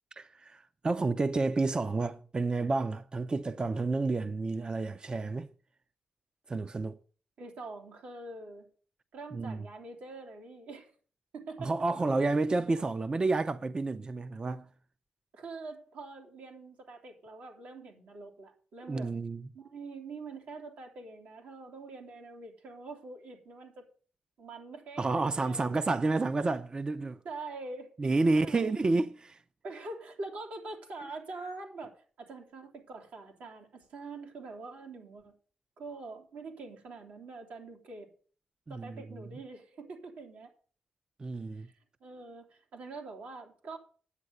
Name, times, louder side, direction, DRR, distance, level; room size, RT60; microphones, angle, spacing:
voice 1, 0.2-5.5 6.5-7.0 9.3-9.6 11.6-14.7 18.9-19.5 25.0-27.2 28.0-29.4 38.7-39.0 41.2-41.7, right 3 dB, 30° right, 0.5 m, -30 dB
voice 2, 7.4-8.7 9.1-10.9 11.3-11.7 15.3-19.1 19.5-23.9 24.4-25.8 27.2-27.9 28.2-28.7 29.6-35.3 35.8-38.1 38.7-40.5 41.5-43.8, right 3 dB, 85° right, 3.1 m, -44 dB
9.8 x 7.8 x 6.6 m
cardioid pair, 75°, 3 cm